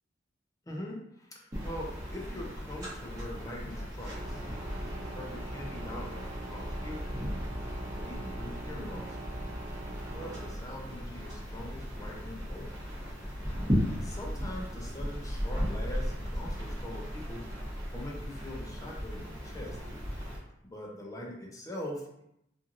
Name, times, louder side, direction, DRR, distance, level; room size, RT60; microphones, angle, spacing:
voice 1, 0.7-7.4 7.9-9.2 9.8-12.7 13.4-13.7 14.0-17.7 17.9-19.8 20.6-22.2, left 1 dB, 20° left, -2 dB, 0.6 m, -43 dB
sound 1, 1.5-20.4, equal, 20° right, 1.0 m, -36 dB
3.0 x 2.5 x 2.5 m, 0.78 s
head